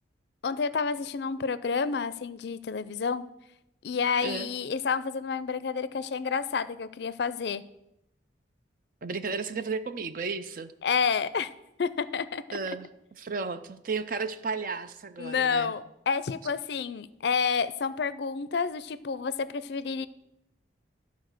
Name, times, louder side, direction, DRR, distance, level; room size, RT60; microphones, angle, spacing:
voice 1, 0.4-3.2 3.8-7.6 10.8-11.5 11.8-12.6 15.2-20.1, left 5 dB, 60° left, 15 dB, 0.4 m, -29 dB
voice 2, 9.0-10.7 12.5-12.9 13.2-15.7, right 4 dB, 45° right, 11 dB, 0.5 m, -33 dB
12.0 x 4.1 x 6.5 m, 0.86 s
head